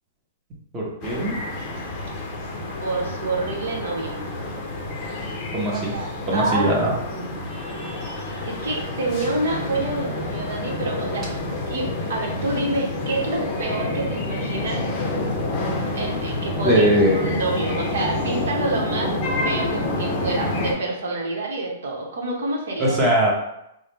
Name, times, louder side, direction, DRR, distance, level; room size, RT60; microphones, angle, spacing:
voice 1, 0.7-1.4 5.5-5.9 6.3-6.9 16.6-17.4 22.8-23.3, right 1 dB, 15° right, -4 dB, 0.8 m, -20 dB
sound 1, 1.0-20.7, left 2 dB, 25° left, 0.6 m, -28 dB
voice 2, 2.8-4.2 5.7-6.8 7.1-7.4 8.4-11.4 11.7-14.9 15.9-16.9 17.1-19.1 19.4-22.9, right 2 dB, 70° right, -1 dB, 1.0 m, -27 dB
3.5 x 2.1 x 4.3 m, 0.82 s
hypercardioid pair, 170°, 0 cm